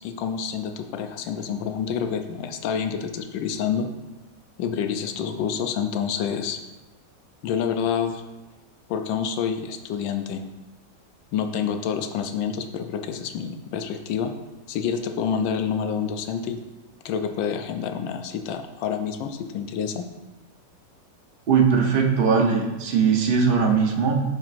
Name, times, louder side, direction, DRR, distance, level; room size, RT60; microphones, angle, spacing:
voice 1, 0.0-3.9 4.6-6.6 7.4-8.2 8.9-10.4 11.3-14.3 14.7-16.6 17.0-20.1, left 7 dB, 85° left, 6 dB, 1.3 m, -28 dB
voice 2, 21.5-24.2, right 6 dB, 40° right, 1 dB, 0.8 m, -20 dB
11.5 x 4.4 x 2.5 m, 1.1 s
omnidirectional pair, 2.0 m